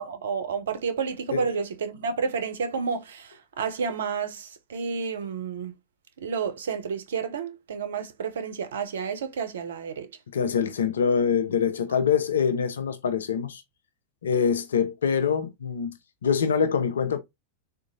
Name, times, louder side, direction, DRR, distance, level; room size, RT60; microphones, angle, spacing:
voice 1, 0.0-5.7 6.2-10.1, right 5 dB, 70° right, 0.6 m, -30 dB
voice 2, 10.3-13.6 14.2-15.9 16.2-17.2, left 6 dB, 75° left, 0.5 m, -24 dB
3.7 x 2.5 x 2.5 m
figure-of-eight pair, 95°, 0 cm